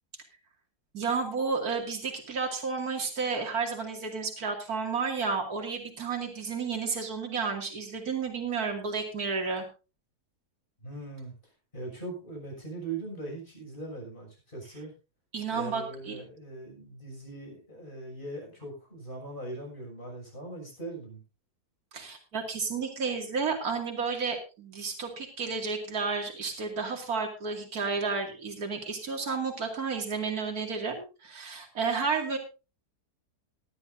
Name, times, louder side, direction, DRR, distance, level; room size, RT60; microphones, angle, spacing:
voice 1, 0.9-9.7 15.3-16.2 21.9-32.4, right 5 dB, 65° right, 2 dB, 3.0 m, -32 dB
voice 2, 10.8-11.3 11.7-14.9 15.5-21.2, right 2 dB, 30° left, 0 dB, 6.9 m, -40 dB
19.5 x 12.0 x 2.7 m, 0.31 s
omnidirectional pair, 1.7 m